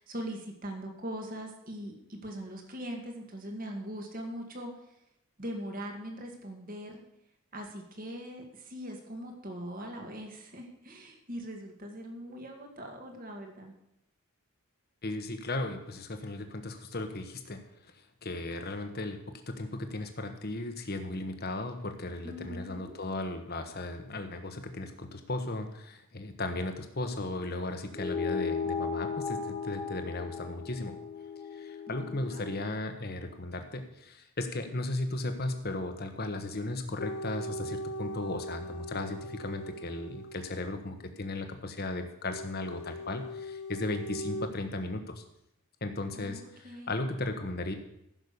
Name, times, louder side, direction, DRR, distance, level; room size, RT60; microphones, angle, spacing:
voice 1, 0.0-4.7 5.4-7.0 7.5-13.7 22.2-23.0 31.9-32.5 46.1-47.0, equal, 40° right, 3 dB, 2.0 m, -41 dB
voice 2, 15.0-31.0 31.5-45.2 45.8-47.7, left 2 dB, 45° left, 7 dB, 1.3 m, -36 dB
sound 1, 27.9-32.8, left 5 dB, 20° left, 1.3 m, -36 dB
sound 2, 37.0-41.0 42.3-44.5, equal, 70° left, 0.9 m, -40 dB
15.0 x 6.4 x 6.8 m, 0.80 s
head